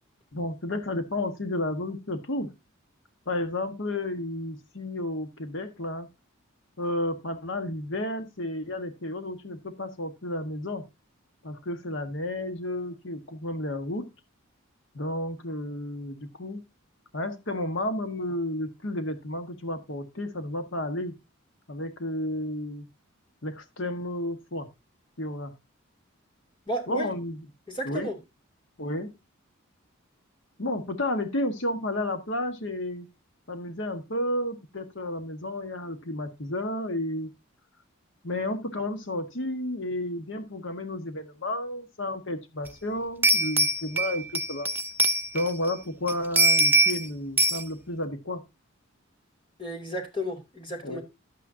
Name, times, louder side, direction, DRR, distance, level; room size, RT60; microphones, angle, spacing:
voice 1, 0.3-2.5 3.3-6.1 6.8-10.8 11.4-14.1 14.9-16.6 17.1-21.1 21.7-22.9 23.4-24.7 25.2-25.5 26.9-27.4 27.8-28.1 28.8-29.1 30.6-33.1 33.5-37.3 38.2-44.7 45.3-48.4 50.8-51.0, left 1 dB, 60° left, 1.5 m, -32 dB
voice 2, 26.7-27.1 27.7-28.2 49.6-51.0, equal, 25° left, 2.7 m, -33 dB
sound 1, 42.7-42.8 43.2-45.7 46.1-47.1 47.4-47.6, right 2 dB, 10° right, 0.5 m, -23 dB
11.5 x 8.7 x 2.8 m
head